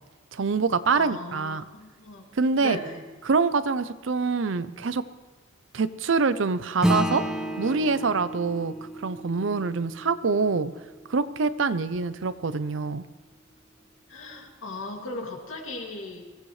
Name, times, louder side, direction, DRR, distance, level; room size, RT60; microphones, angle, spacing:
voice 1, 0.3-1.6 2.3-2.8 3.2-5.0 5.7-7.2 7.6-8.7 9.0-10.7 11.1-13.0, right 4 dB, 70° right, 14 dB, 0.6 m, -25 dB
voice 2, 0.9-2.2 2.6-3.0 14.1-16.2, left 2 dB, 80° left, 1 dB, 2.5 m, -37 dB
Acoustic guitar / Strum, 6.8-11.6, equal, 5° right, 1.0 m, -31 dB
23.0 x 15.5 x 3.3 m, 1.2 s
head